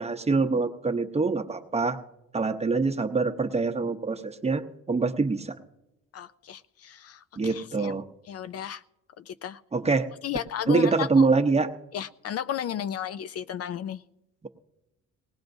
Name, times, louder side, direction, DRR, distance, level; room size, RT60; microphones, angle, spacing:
voice 1, 0.0-2.0 2.3-4.6 4.9-5.6 7.4-8.0 9.7-10.1 10.7-11.7, right 4 dB, 20° right, 7 dB, 0.8 m, -24 dB
voice 2, 6.1-7.9 8.3-8.8 9.3-9.6 10.2-11.3 11.9-14.0, left 9 dB, 55° left, 13 dB, 0.4 m, -34 dB
19.5 x 18.5 x 2.6 m, 0.93 s
cardioid pair, 90°, 30 cm